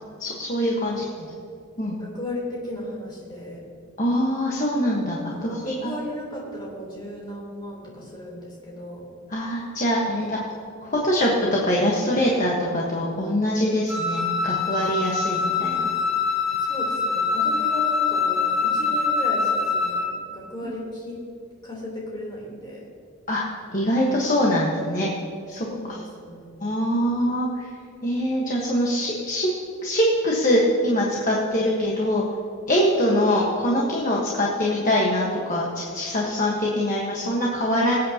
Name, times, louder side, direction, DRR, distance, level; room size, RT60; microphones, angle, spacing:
voice 1, 0.2-1.0 1.8-2.0 4.0-5.9 9.3-10.4 10.8-15.9 20.6-20.7 23.3-23.4 23.7-25.1 25.5-25.7 26.6-27.7 28.0-29.5 29.8-32.2 32.7-37.9, equal, 35° left, -4 dB, 1.3 m, -23 dB
voice 2, 2.0-3.6 5.3-9.0 10.2-10.4 16.6-20.1 20.3-21.2 21.6-22.8 25.6-26.5, left 1 dB, 20° left, -4 dB, 3.4 m, -35 dB
Wind instrument woodwind instrument, 13.9-20.1, left 5 dB, ahead, 1.8 m, -24 dB
23.5 x 8.5 x 2.9 m, 2.4 s
head